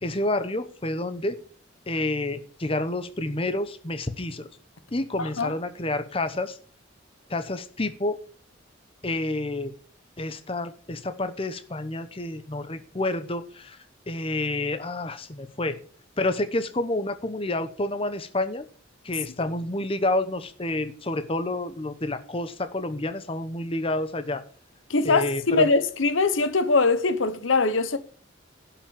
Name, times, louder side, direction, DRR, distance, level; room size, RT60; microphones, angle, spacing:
voice 1, 0.0-1.4 1.9-4.5 4.9-6.6 7.3-8.2 9.0-9.7 10.2-13.8 14.1-15.8 16.2-18.6 19.0-24.4 25.0-25.7, left 2 dB, 30° left, 0.9 m, -29 dB
voice 2, 5.2-5.5 24.9-28.0, left 3 dB, 85° left, 1.0 m, -22 dB
11.5 x 6.0 x 7.1 m
head